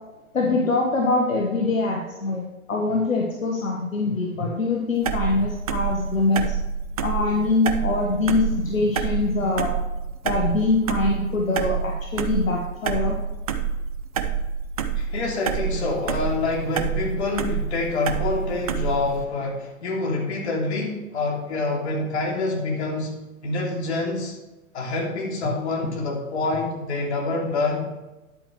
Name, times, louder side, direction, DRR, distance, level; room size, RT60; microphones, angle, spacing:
voice 1, 0.3-6.5 7.0-9.7 10.2-13.1, left 3 dB, 70° left, 0 dB, 1.5 m, -23 dB
sound 1, 5.0-19.2, right 6 dB, 30° right, 0.5 m, -27 dB
voice 2, 15.0-23.2 23.4-24.3 24.7-27.8, left 3 dB, 50° left, -1 dB, 2.7 m, -26 dB
10.5 x 8.2 x 3.2 m, 1.1 s
figure-of-eight pair, 115°, 41 cm